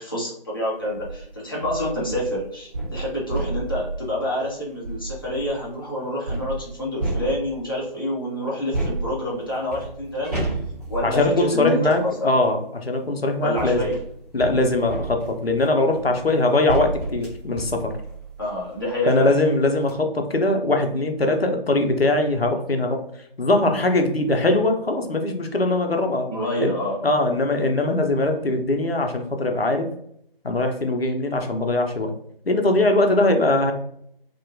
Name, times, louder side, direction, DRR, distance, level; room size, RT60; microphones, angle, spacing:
voice 1, 0.0-10.4 10.9-12.3 13.4-14.0 18.4-19.3 26.3-27.0, left 1 dB, 25° left, -6 dB, 0.7 m, -27 dB
sound 1, 0.8-1.1 1.6-5.7 6.3-7.8 8.7-12.1 13.0-19.0 19.4-19.5 19.8-19.9, right 2 dB, 40° right, 1.0 m, -32 dB
voice 2, 11.0-13.8 14.3-18.0 19.1-23.0 23.4-26.3 26.6-26.7 27.0-29.9 30.4-32.1 32.5-33.7, left 2 dB, 90° left, 4 dB, 0.6 m, -21 dB
2.8 x 2.3 x 2.6 m, 0.71 s
figure-of-eight pair, 155°, 29 cm